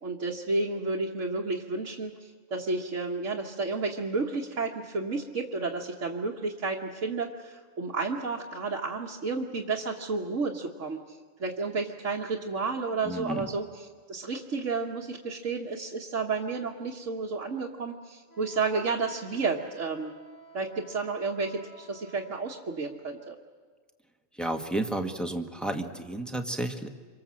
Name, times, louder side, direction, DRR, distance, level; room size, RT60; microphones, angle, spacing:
voice 1, 0.0-20.1 20.5-23.4, right 4 dB, 75° right, -2 dB, 1.8 m, -31 dB
voice 2, 13.0-13.5 24.4-26.9, right 1 dB, ahead, 4 dB, 1.6 m, -32 dB
Wind instrument woodwind instrument, 18.3-22.4, equal, 40° left, 7.2 m, -53 dB
27.5 x 24.5 x 7.6 m, 1.6 s
omnidirectional pair, 1.3 m